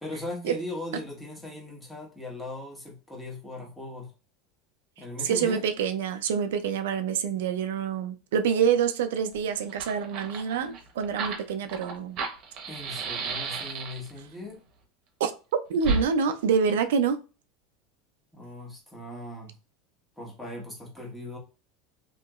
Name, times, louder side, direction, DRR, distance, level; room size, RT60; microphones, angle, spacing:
voice 1, 0.0-4.1 5.0-5.6 12.7-14.6 18.3-19.5 20.2-21.4, left 2 dB, 5° left, 1.2 m, -39 dB
voice 2, 5.2-12.2 15.2-15.3 15.7-17.2, right 7 dB, 90° right, 0.4 m, -26 dB
Fire, 9.3-9.4 9.6-14.2 15.8-16.0, right 4 dB, 50° right, 0.8 m, -32 dB
2.8 x 2.7 x 2.3 m
supercardioid pair, 130°, 0 cm